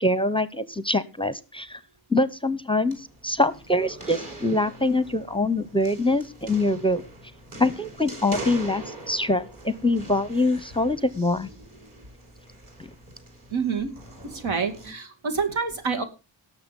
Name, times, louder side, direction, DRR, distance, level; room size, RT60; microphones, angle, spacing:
voice 1, 0.0-1.8 2.1-7.0 7.6-11.5, left 2 dB, 10° left, 15 dB, 0.7 m, -24 dB
sound 1, 2.9-14.9, right 2 dB, 45° right, 4.9 m, -42 dB
voice 2, 13.5-13.9 14.3-16.0, right 5 dB, 80° right, 5 dB, 2.6 m, -27 dB
18.0 x 6.7 x 5.3 m, 0.31 s
wide cardioid pair, 120°, 47 cm